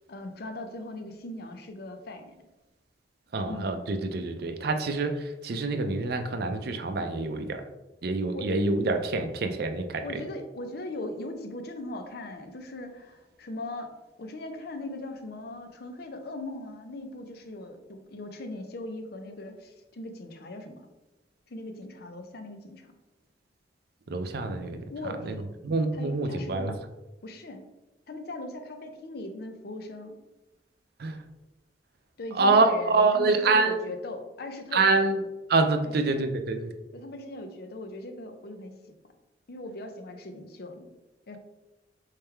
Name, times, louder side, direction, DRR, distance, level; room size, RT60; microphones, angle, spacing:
voice 1, 0.1-2.3 3.4-3.8 8.3-8.5 10.0-13.9 14.2-20.9 21.5-22.9 24.9-25.4 25.9-26.8 27.2-27.6 28.1-30.2 32.2-35.1 35.8-35.9 36.2-36.3 36.9-38.9 39.5-40.9 41.3-41.4, left 2 dB, 60° left, 6 dB, 0.6 m, -39 dB
voice 2, 3.3-7.6 8.0-10.2 24.1-24.8 25.6-26.7 31.0-31.2 32.4-33.8 34.7-35.2 35.5-36.7, right 3 dB, 60° right, 6 dB, 0.5 m, -26 dB
3.7 x 3.2 x 4.4 m, 1.0 s
head